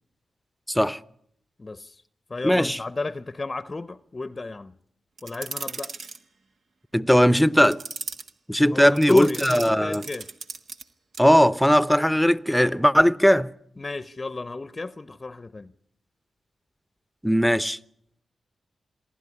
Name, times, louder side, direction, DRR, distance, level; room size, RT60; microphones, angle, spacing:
voice 1, 0.7-1.0 2.4-2.8 6.9-7.8 8.5-10.0 11.2-13.5 17.2-17.8, equal, 5° left, 0.8 m, -19 dB
voice 2, 1.6-2.0 2.3-4.7 5.2-5.9 8.7-10.3 13.8-15.7, left 3 dB, 35° left, 0.7 m, -32 dB
sound 1, 5.2-6.2 7.6-8.3 9.0-10.8 11.1-11.3, right 4 dB, 70° right, 1.4 m, -37 dB
26.5 x 11.5 x 9.8 m
supercardioid pair, 40°, 0 cm